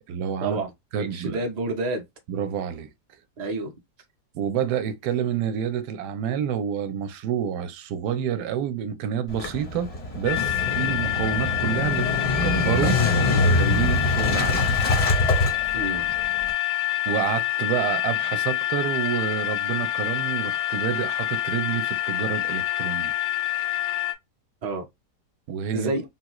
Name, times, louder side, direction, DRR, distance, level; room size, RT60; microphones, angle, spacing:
voice 1, 0.1-0.6 0.9-1.4 2.3-2.9 4.3-12.1 12.4-13.0 13.3-14.8 17.1-23.1 25.5-25.9, right 8 dB, 75° right, 1.1 m, -28 dB
voice 2, 1.0-2.0 3.4-3.7 15.7-16.1 24.6-24.8 25.7-26.0, right 2 dB, 50° right, 0.4 m, -28 dB
Motorcycle / Engine starting, 9.3-16.5, left 2 dB, 40° left, 0.5 m, -24 dB
sound 1, 10.3-24.1, left 14 dB, 80° left, 1.2 m, -27 dB
3.6 x 2.3 x 2.9 m
omnidirectional pair, 1.8 m